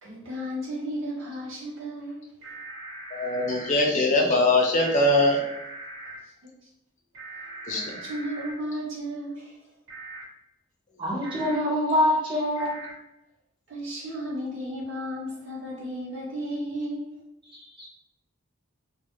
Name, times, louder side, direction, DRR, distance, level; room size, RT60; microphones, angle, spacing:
voice 1, 0.0-2.5 6.2-6.3 7.6-9.6 13.7-17.2, equal, 60° right, -5 dB, 0.8 m, -34 dB
sound 1, 2.4-3.8 4.8-6.2 7.1-8.5 9.9-10.2 11.2-11.6 12.5-12.9, right 2 dB, 90° right, 1.0 m, -40 dB
voice 2, 3.1-5.4 7.7-7.9, left 2 dB, 35° left, 1 dB, 0.4 m, -22 dB
voice 3, 11.0-12.8 17.5-17.8, left 1 dB, 25° right, -5 dB, 0.7 m, -25 dB
2.3 x 2.0 x 2.8 m, 0.87 s
head